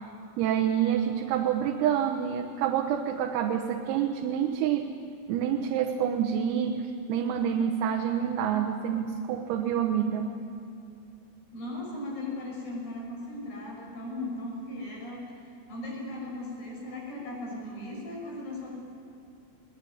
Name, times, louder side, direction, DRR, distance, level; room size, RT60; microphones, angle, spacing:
voice 1, 0.4-4.9 5.3-10.3, right 9 dB, 90° right, 2 dB, 3.8 m, -27 dB
voice 2, 11.5-15.4 15.7-18.8, left 1 dB, 50° left, -3 dB, 8.0 m, -37 dB
22.0 x 20.0 x 9.4 m, 2.5 s
omnidirectional pair, 5.9 m